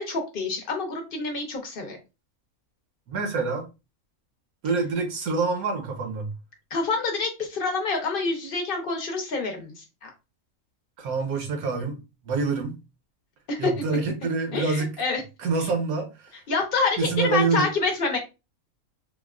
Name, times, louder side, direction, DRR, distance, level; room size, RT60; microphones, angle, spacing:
voice 1, 0.0-2.0 6.7-9.7 10.0-10.1 13.5-13.7 14.5-15.2 16.5-18.2, left 4 dB, 50° left, 0.8 m, -27 dB
voice 2, 3.1-3.7 4.6-6.3 11.0-12.0 12.2-12.8 13.6-14.9 15.4-16.3 17.0-17.7, right 4 dB, 80° right, 1.3 m, -26 dB
3.5 x 2.1 x 2.3 m
omnidirectional pair, 1.5 m